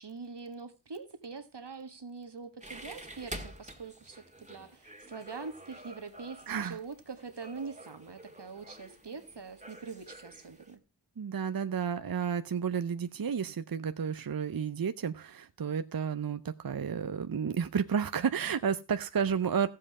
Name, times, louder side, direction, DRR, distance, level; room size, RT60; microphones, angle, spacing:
voice 1, 0.0-10.8, right 4 dB, 70° right, 1.6 m, -44 dB
sound 1, 2.6-10.7, right 1 dB, 15° right, 1.7 m, -48 dB
voice 2, 6.5-6.8 11.2-19.7, right 7 dB, 55° right, 0.6 m, -31 dB
14.5 x 7.7 x 4.8 m
wide cardioid pair, 50°, 42 cm